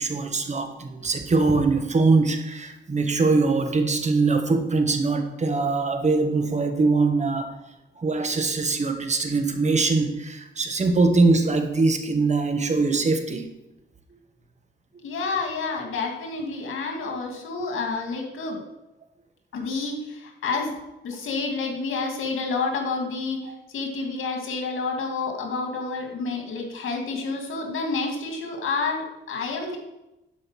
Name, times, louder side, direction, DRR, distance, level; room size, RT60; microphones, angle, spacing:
voice 1, 0.0-7.5 8.0-13.5 23.5-23.6, right 3 dB, 35° right, 6 dB, 1.4 m, -22 dB
voice 2, 15.0-18.6 19.5-20.7 21.0-29.8, left 4 dB, 90° left, 3 dB, 2.3 m, -29 dB
11.0 x 5.3 x 7.4 m, 0.94 s
cardioid pair, 110°, 20 cm